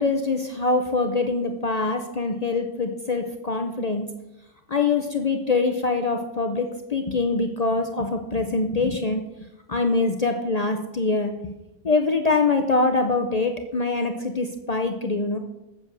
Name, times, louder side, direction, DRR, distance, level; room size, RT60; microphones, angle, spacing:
voice 1, 0.0-4.1 4.7-9.2 9.7-11.5 11.8-15.4, left 3 dB, 70° left, 5 dB, 0.3 m, -24 dB
7.5 x 7.4 x 6.2 m, 0.94 s
omnidirectional pair, 1.7 m